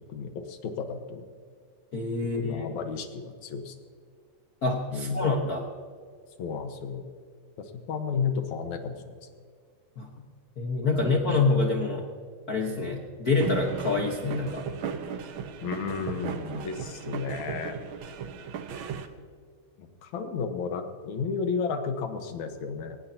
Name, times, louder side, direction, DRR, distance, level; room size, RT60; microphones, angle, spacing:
voice 1, 0.1-1.2 2.3-3.8 4.9-5.4 6.4-7.1 7.6-9.0 10.9-11.6 15.6-17.8 19.8-23.0, left 5 dB, 75° left, 6 dB, 2.6 m, -33 dB
voice 2, 1.9-2.8 4.6-5.7 10.0-10.1 10.6-12.0 12.5-14.6, left 3 dB, 45° left, 0 dB, 1.2 m, -26 dB
sound 1, 13.4-19.1, right 7 dB, 60° right, 1.4 m, -36 dB
22.5 x 19.0 x 2.9 m, 2.1 s
omnidirectional pair, 3.4 m